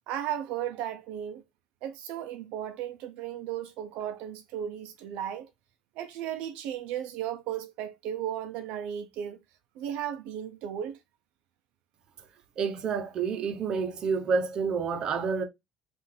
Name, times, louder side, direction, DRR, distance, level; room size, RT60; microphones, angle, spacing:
voice 1, 0.1-1.4 1.8-5.5 6.0-9.4 9.8-11.0, right 10 dB, 70° right, 0.5 m, -35 dB
voice 2, 12.6-15.4, right 5 dB, 35° right, 0.7 m, -29 dB
5.5 x 2.5 x 3.3 m
cardioid pair, 165°, 2 cm